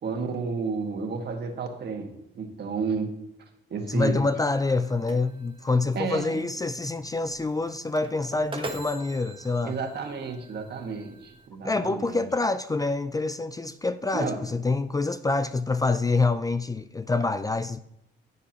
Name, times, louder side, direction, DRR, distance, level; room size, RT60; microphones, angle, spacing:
voice 1, 0.0-3.1 3.7-4.2 5.9-6.4 9.6-12.2 14.1-14.4, right 4 dB, 55° right, 1.7 m, -31 dB
voice 2, 3.9-9.8 11.6-17.8, left 3 dB, 20° left, 0.4 m, -26 dB
sound 1, 4.4-11.5, right 3 dB, 25° right, 1.2 m, -43 dB
15.0 x 7.0 x 3.0 m
cardioid pair, 90°, 20 cm